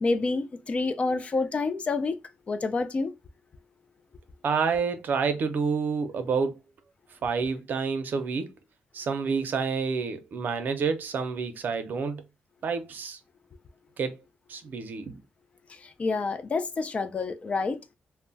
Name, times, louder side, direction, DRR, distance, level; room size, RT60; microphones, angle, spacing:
voice 1, 0.0-2.2 2.5-3.1 15.7-17.8, left 3 dB, 35° left, 0.3 m, -28 dB
voice 2, 4.4-6.6 7.2-8.5 8.9-12.2 12.6-13.2 14.0-14.2 14.5-15.2, right 5 dB, 60° right, 0.5 m, -28 dB
2.2 x 2.0 x 3.8 m
cardioid pair, 120°, 4 cm